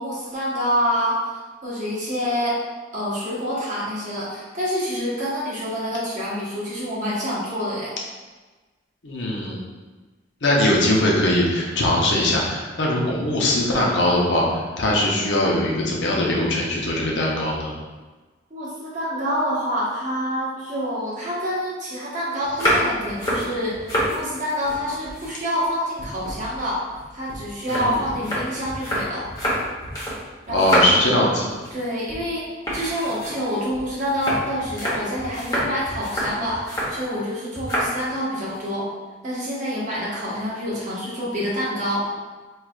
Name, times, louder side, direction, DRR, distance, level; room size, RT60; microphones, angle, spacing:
voice 1, 0.0-2.6 2.9-7.9 18.5-26.8 27.1-29.3 30.5-31.2 31.7-32.4 32.7-38.9 39.2-42.1, equal, 40° right, -7 dB, 1.1 m, -27 dB
voice 2, 9.0-9.6 10.4-17.7 27.7-28.1 30.5-31.5, left 1 dB, 65° left, -3 dB, 0.8 m, -21 dB
sound 1, 22.4-24.2 24.5-25.7 26.0-30.2 30.5-31.1 31.5-32.3 32.6-37.0 37.5-37.9 38.3-38.7, equal, 20° left, 1.0 m, -27 dB
4.7 x 3.2 x 2.4 m, 1.3 s
head